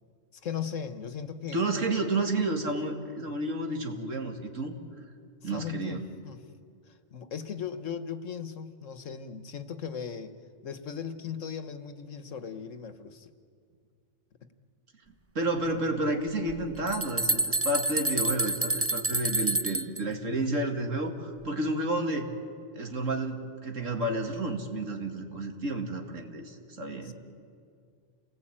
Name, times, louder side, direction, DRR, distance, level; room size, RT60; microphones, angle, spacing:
voice 1, 0.4-1.8 5.4-6.4 6.9-10.4 10.6-13.3 27.0-27.1, left 7 dB, 80° left, 10 dB, 1.6 m, -38 dB
voice 2, 1.5-4.7 5.4-6.1 15.3-22.3 22.7-27.1, right 2 dB, 80° right, 4 dB, 2.6 m, -31 dB
sound 1, 16.5-16.6 16.9-20.0, right 2 dB, 20° right, 0.4 m, -28 dB
29.0 x 19.0 x 8.9 m, 2.2 s
omnidirectional pair, 1.3 m